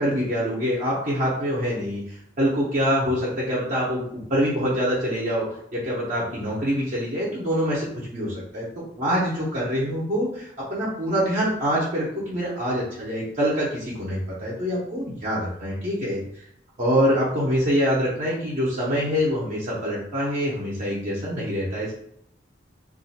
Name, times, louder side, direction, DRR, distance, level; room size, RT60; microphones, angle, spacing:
voice 1, 0.0-16.2 16.8-21.9, equal, 45° right, -6 dB, 0.9 m, -25 dB
2.6 x 2.4 x 4.1 m, 0.70 s
head